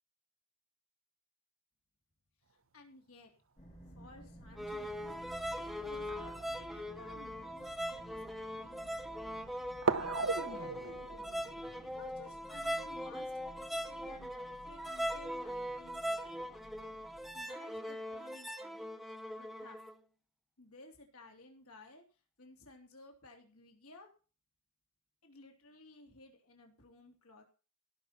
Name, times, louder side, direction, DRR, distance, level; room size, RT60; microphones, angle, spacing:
voice 1, 2.5-3.3 3.9-9.3 10.0-11.0 11.8-16.6 17.3-18.8 19.4-19.8 20.6-24.1 25.2-27.4, left 2 dB, 75° left, 2 dB, 3.2 m, -57 dB
sound 1, 3.6-17.4, right 1 dB, 30° left, 4.5 m, -55 dB
sound 2, 4.5-4.6 5.9-7.2 7.9-8.0 9.8-13.0, right 4 dB, 60° right, 1.0 m, -38 dB
sound 3, 4.6-19.9, equal, ahead, 0.9 m, -41 dB
17.0 x 6.1 x 5.9 m, 0.35 s
head